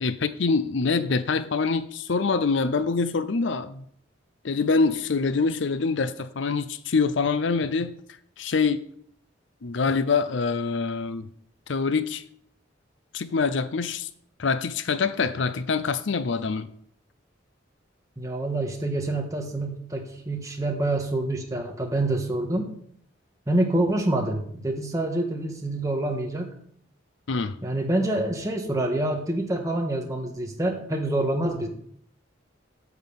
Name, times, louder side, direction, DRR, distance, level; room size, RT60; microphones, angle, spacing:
voice 1, 0.0-3.9 4.4-7.9 8.4-8.9 9.6-11.3 11.7-12.2 13.1-14.1 14.4-16.7 27.3-27.6, left 4 dB, 65° left, 0.6 m, -25 dB
voice 2, 18.2-22.7 23.5-26.5 27.6-31.7, right 1 dB, 15° right, 1.6 m, -26 dB
9.4 x 6.0 x 7.2 m
head